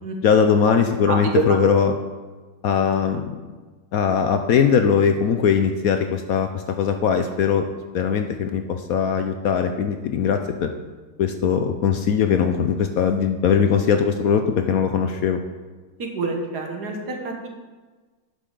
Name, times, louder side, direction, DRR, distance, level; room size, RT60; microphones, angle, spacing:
voice 1, 0.2-2.0 2.6-3.3 3.9-7.6 7.9-10.7 11.2-15.4, left 7 dB, 70° left, 6 dB, 0.9 m, -20 dB
voice 2, 16.0-17.5, right 3 dB, 60° right, 2 dB, 1.8 m, -29 dB
11.5 x 8.1 x 3.9 m, 1.3 s
omnidirectional pair, 2.0 m